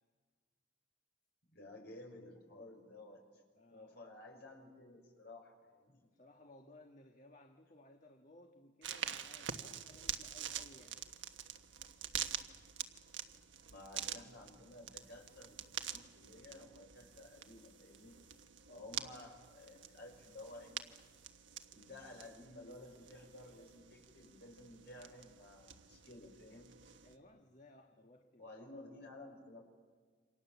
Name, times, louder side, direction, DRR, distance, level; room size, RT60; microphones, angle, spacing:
voice 1, 1.5-3.2 3.7-6.0 13.7-18.2 18.7-20.9 21.7-26.8 28.4-29.6, left 2 dB, 55° left, 1 dB, 5.9 m, -54 dB
voice 2, 3.5-4.1 6.0-11.1 18.7-19.0 27.0-28.5, left 2 dB, 35° left, 4 dB, 1.5 m, -61 dB
sound 1, 8.8-27.2, right 9 dB, 65° right, 1.3 m, -47 dB
sound 2, 15.0-16.0 16.9-18.5 19.4-21.3 22.7-23.8 24.4-24.5, right 6 dB, 30° right, 6.0 m, -74 dB
29.0 x 26.0 x 7.2 m, 1.5 s
head